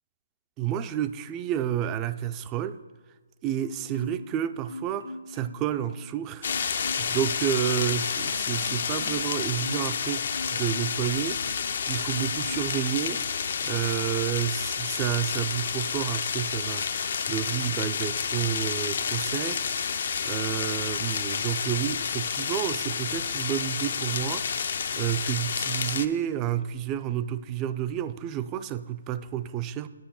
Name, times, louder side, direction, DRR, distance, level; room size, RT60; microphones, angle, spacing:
voice 1, 0.6-2.8 3.4-11.4 11.9-13.2 13.6-29.9, right 11 dB, 20° right, 12 dB, 0.4 m, -30 dB
Marimba xylophone, 3.6-4.4 4.7-6.1 6.4-7.2 7.5-11.7 12.1-12.8 13.2-13.4, left 2 dB, 80° left, 1.7 m, -42 dB
sound 1, 6.4-26.1, left 6 dB, 55° left, 0.5 m, -30 dB
7.9 x 5.7 x 7.1 m, 1.3 s
hypercardioid pair, 150°, 0 cm